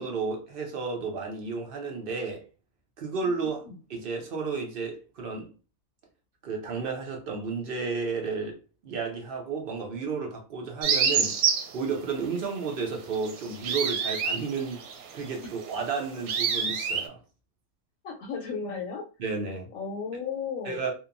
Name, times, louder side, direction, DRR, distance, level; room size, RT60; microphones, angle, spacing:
voice 1, 0.0-2.4 3.0-3.6 3.9-5.5 6.4-8.6 8.8-11.4 11.7-14.8 15.1-17.2 19.2-19.7 20.6-20.9, right 4 dB, 60° right, 0.6 m, -32 dB
sound 1, 10.8-11.7 13.0-17.1, right 6 dB, 90° right, 1.1 m, -27 dB
voice 2, 18.0-19.0 19.7-20.8, left 5 dB, 75° left, 1.0 m, -34 dB
2.8 x 2.2 x 2.4 m
omnidirectional pair, 1.5 m